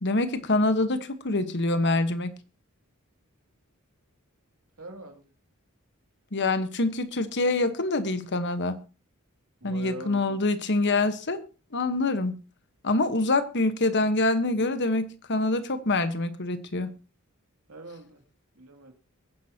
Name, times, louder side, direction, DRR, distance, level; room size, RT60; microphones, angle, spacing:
voice 1, 0.0-2.3 6.3-8.8 9.6-11.4 11.7-12.4 12.8-16.9, left 2 dB, 55° left, 11 dB, 1.3 m, -25 dB
voice 2, 4.8-5.2 9.6-10.4 17.7-18.2 18.5-18.9, right 2 dB, 75° right, 4 dB, 2.8 m, -43 dB
22.5 x 10.5 x 2.9 m, 0.33 s
head